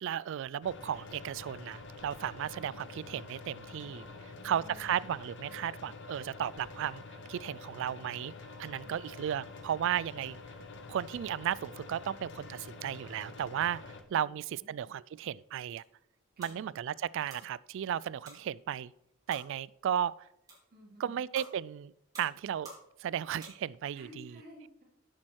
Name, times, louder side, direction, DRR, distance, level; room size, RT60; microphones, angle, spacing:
voice 1, 0.0-4.0 4.4-7.0 7.3-8.3 8.6-10.4 10.9-15.8 16.4-18.9 19.3-20.1 21.0-21.9 22.2-22.7 23.0-24.3, right 9 dB, 65° right, 0.3 m, -34 dB
sound 1, 0.6-14.0, left 3 dB, 60° left, 1.1 m, -47 dB
voice 2, 4.1-5.0 8.8-9.0 14.1-14.7 16.4-16.7 20.7-21.2 23.9-24.8, equal, 50° right, 2.8 m, -54 dB
sound 2, 15.7-24.0, right 1 dB, 20° right, 4.5 m, -55 dB
10.5 x 7.5 x 4.5 m
head